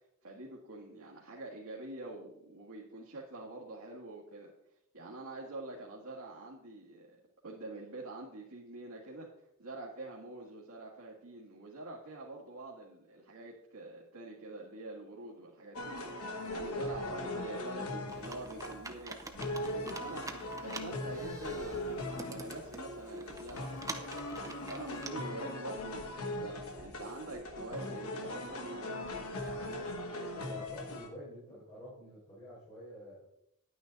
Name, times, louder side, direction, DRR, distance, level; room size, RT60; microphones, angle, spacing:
voice 1, 0.2-4.5 4.9-7.2 7.4-9.3 9.6-20.3 20.6-24.3 24.7-30.7, right 2 dB, 75° right, -5 dB, 1.8 m, -46 dB
sound 1, 15.7-31.1, left 1 dB, 75° left, 1.4 m, -40 dB
voice 2, 16.7-17.3 30.4-33.3, equal, 20° left, -10 dB, 4.4 m, -49 dB
Computer keyboard, 18.1-25.1, right 3 dB, 15° right, 0.7 m, -47 dB
10.0 x 9.3 x 4.0 m, 0.81 s
head